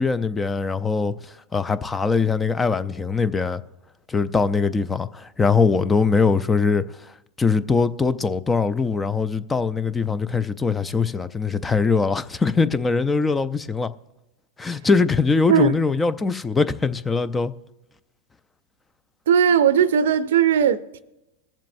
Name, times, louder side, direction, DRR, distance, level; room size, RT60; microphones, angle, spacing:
voice 1, 0.0-3.6 4.1-13.9 14.6-17.5, left 4 dB, 15° left, 0.4 m, -22 dB
voice 2, 19.3-21.0, right 8 dB, 80° right, 0.6 m, -18 dB
21.5 x 7.4 x 2.6 m
hypercardioid pair, 125°, 0 cm